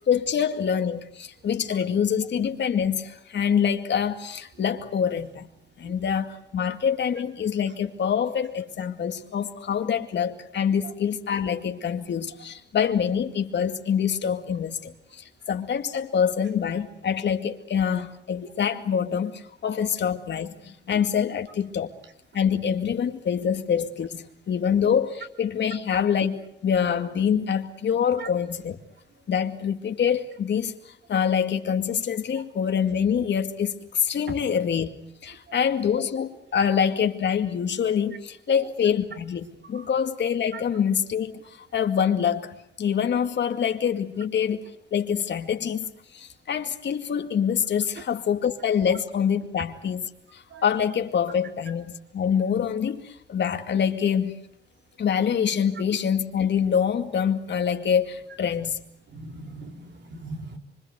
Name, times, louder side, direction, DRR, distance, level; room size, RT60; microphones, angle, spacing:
voice 1, 0.1-5.5 5.8-21.9 22.3-28.8 29.3-34.9 35.2-54.4 55.0-58.8, left 7 dB, 70° left, 2.2 m, -25 dB
voice 2, 59.1-60.6, right 3 dB, 70° right, 3.4 m, -40 dB
26.5 x 25.0 x 8.1 m
wide cardioid pair, 150°, 19 cm